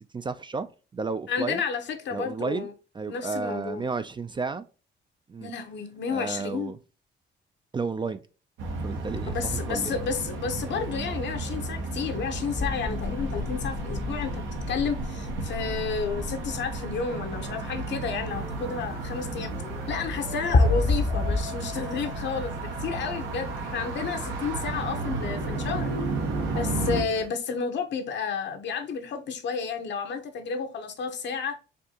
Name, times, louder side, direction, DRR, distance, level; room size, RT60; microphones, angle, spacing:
voice 1, 0.1-0.7 0.9-1.6 2.1-2.7 2.9-4.6 5.3-5.5 6.1-6.8 7.7-8.2 8.8-10.0, right 4 dB, 25° right, 0.4 m, -32 dB
voice 2, 1.3-2.7 3.1-3.9 5.4-6.7 9.3-19.5 19.9-25.9 26.5-31.6, left 6 dB, 65° left, 0.9 m, -31 dB
sound 1, 8.6-27.0, right 3 dB, 85° right, 1.1 m, -33 dB
sound 2, 12.6-18.1 20.5-21.4, left 3 dB, 35° left, 0.6 m, -28 dB
sound 3, 18.3-27.3, right 1 dB, 55° right, 1.6 m, -42 dB
4.4 x 2.6 x 2.8 m
cardioid pair, 90°, 20 cm